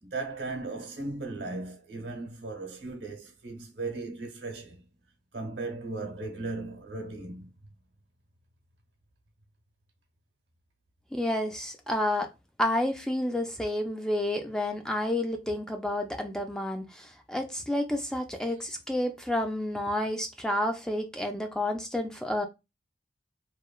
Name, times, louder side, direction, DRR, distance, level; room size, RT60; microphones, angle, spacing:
voice 1, 0.0-4.8 5.3-7.5, right 3 dB, 85° right, 0.9 m, -37 dB
voice 2, 11.1-12.3 12.6-22.5, left 1 dB, 5° left, 0.3 m, -30 dB
3.0 x 2.1 x 2.3 m
head